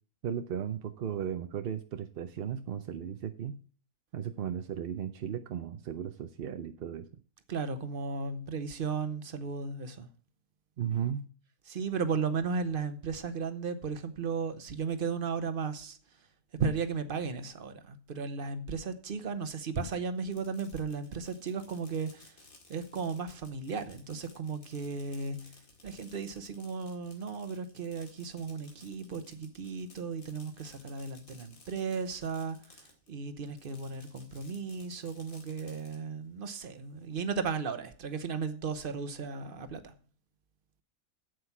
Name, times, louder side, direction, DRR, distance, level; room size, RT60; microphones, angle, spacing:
voice 1, 0.2-3.6 4.1-7.1 10.8-11.3, right 9 dB, 60° right, 0.6 m, -35 dB
voice 2, 7.5-10.1 11.7-16.0 16.6-22.3 22.7-25.6 25.8-39.9, right 5 dB, 45° right, 1.0 m, -35 dB
Fireworks, 20.2-33.1 33.5-36.0, left 3 dB, 70° left, 2.5 m, -58 dB
8.0 x 8.0 x 5.8 m
omnidirectional pair, 1.5 m